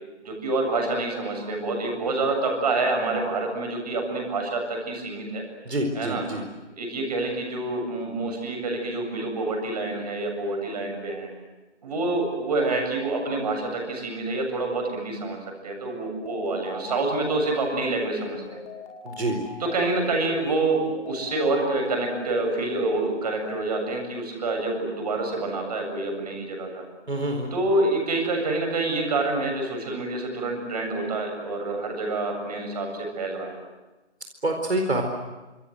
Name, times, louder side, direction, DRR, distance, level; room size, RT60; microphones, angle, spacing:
voice 1, 0.2-5.4 5.9-6.2 6.8-11.3 11.8-15.4 15.6-18.6 19.6-26.8 27.5-32.9 33.2-33.5, right 2 dB, 35° right, 3 dB, 7.5 m, -27 dB
voice 2, 5.6-6.4 19.0-19.4 27.1-27.5 34.4-35.0, right 1 dB, 65° right, 3 dB, 4.5 m, -26 dB
sound 1, 16.2-23.7, left 4 dB, 10° left, 2.3 m, -41 dB
27.0 x 27.0 x 7.9 m, 1.1 s
figure-of-eight pair, 150°, 35 cm